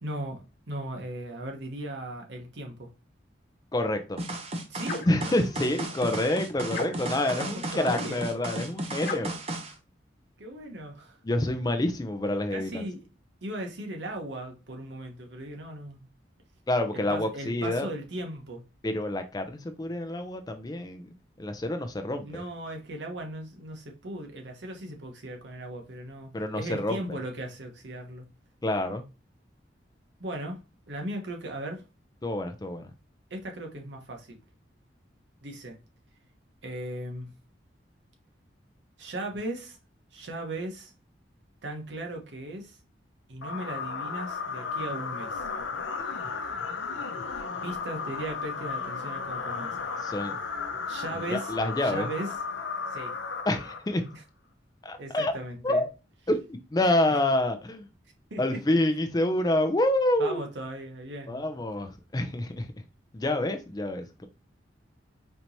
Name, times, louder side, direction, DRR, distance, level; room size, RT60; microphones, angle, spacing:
voice 1, 0.0-2.9 4.7-5.4 7.3-8.3 10.4-11.2 12.5-13.0 13.4-16.1 16.9-18.6 22.2-28.2 30.2-31.8 33.3-34.4 35.4-35.8 36.6-37.3 39.0-39.8 40.1-40.9 41.6-42.8 43.3-45.5 47.6-49.8 50.9-51.5 51.8-52.3 52.9-53.1 54.1-54.2 55.0-55.9 57.1-57.2 58.3-58.8 60.2-61.4, right 1 dB, 75° right, 1.0 m, -37 dB
voice 2, 3.7-4.2 5.1-9.3 11.2-12.8 16.7-17.9 18.8-21.1 21.4-22.4 26.3-27.0 28.6-29.0 32.2-32.9 50.0-50.4 51.3-52.1 53.5-54.0 54.8-55.3 55.6-55.8 56.3-56.4 56.7-57.9 58.4-60.4 61.3-62.7 63.1-64.3, left 1 dB, 20° left, 0.4 m, -27 dB
sound 1, 4.2-9.7, right 1 dB, 35° right, 0.6 m, -34 dB
sound 2, 4.8-5.2 6.7-7.3 9.0-9.4, left 3 dB, 45° left, 1.5 m, -35 dB
sound 3, 43.4-54.1, left 5 dB, 85° left, 0.6 m, -34 dB
4.4 x 2.9 x 2.6 m
head